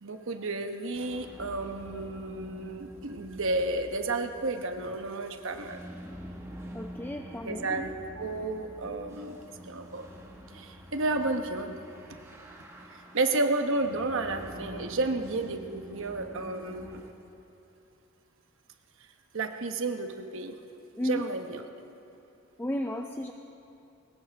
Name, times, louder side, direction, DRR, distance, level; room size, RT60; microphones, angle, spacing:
voice 1, 0.0-5.8 7.4-9.4 9.6-10.1 10.5-11.8 13.1-17.1 19.3-20.6 21.0-21.6, right 2 dB, 60° right, 6 dB, 1.0 m, -32 dB
sound 1, 0.9-17.1, equal, 15° right, 1.5 m, -47 dB
voice 2, 6.7-7.9 21.0-21.2 22.6-23.3, left 1 dB, 10° left, 5 dB, 0.4 m, -33 dB
21.5 x 19.0 x 3.5 m, 2.8 s
head